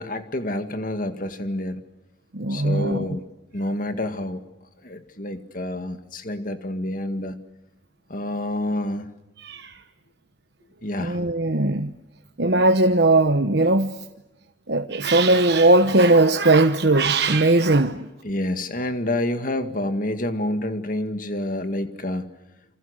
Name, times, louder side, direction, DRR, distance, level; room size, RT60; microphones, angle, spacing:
voice 1, 0.0-1.8 2.5-3.2 3.5-4.4 4.8-7.3 8.1-9.1 10.8-11.2 18.2-22.3, left 1 dB, 45° left, 8 dB, 2.1 m, -28 dB
voice 2, 2.3-3.1 9.4-9.8 11.0-11.9 12.4-14.0 14.7-18.1, right 2 dB, 65° right, 6 dB, 1.2 m, -19 dB
28.5 x 26.5 x 6.6 m, 0.98 s
head